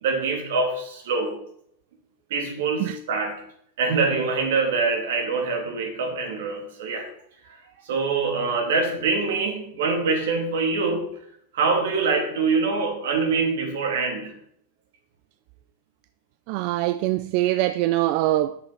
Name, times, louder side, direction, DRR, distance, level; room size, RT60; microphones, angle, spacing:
voice 1, 0.0-1.4 2.3-3.4 3.8-7.1 7.8-11.1 11.5-14.3, right 4 dB, 75° right, 2.7 m, -24 dB
voice 2, 16.5-18.6, right 15 dB, 50° right, 0.4 m, -23 dB
7.8 x 6.8 x 5.6 m
supercardioid pair, 145°, 0 cm